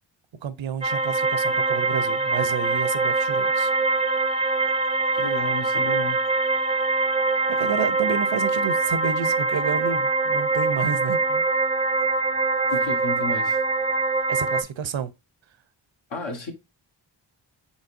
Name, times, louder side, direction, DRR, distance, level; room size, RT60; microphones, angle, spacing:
voice 1, 0.4-3.7 7.5-11.4 14.3-15.1, right 7 dB, 70° right, 0.7 m, -30 dB
sound 1, 0.8-14.6, right 3 dB, 15° right, 0.4 m, -23 dB
voice 2, 5.1-6.2 12.7-13.6 16.1-16.5, left 2 dB, 70° left, 1.3 m, -32 dB
4.1 x 4.0 x 2.5 m
cardioid pair, 50°, 47 cm